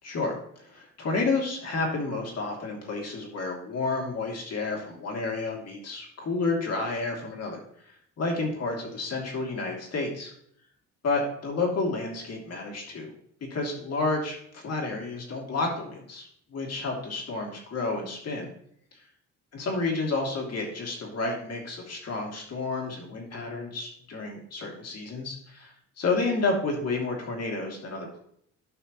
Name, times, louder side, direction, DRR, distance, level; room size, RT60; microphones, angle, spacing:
voice 1, 0.0-10.3 11.0-13.1 13.5-18.5 19.5-28.2, left 3 dB, 55° left, 0 dB, 2.7 m, -30 dB
11.5 x 5.7 x 3.1 m, 0.67 s
cardioid pair, 90°, 30 cm